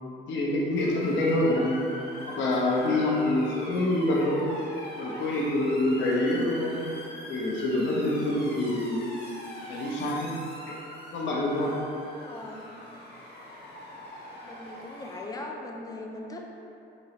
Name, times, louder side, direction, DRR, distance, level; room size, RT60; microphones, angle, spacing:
voice 1, 0.3-1.8 2.3-4.5 5.0-6.9 7.3-9.0 9.7-10.8 11.1-11.8, left 1 dB, 70° left, -4 dB, 0.6 m, -26 dB
Motor vehicle (road) / Siren, 0.8-15.3, left 1 dB, 55° left, 1.0 m, -43 dB
voice 2, 12.0-12.8 14.2-16.5, left 2 dB, 20° left, 0 dB, 0.4 m, -40 dB
2.9 x 2.9 x 2.8 m, 2.8 s
cardioid pair, 90°, 20 cm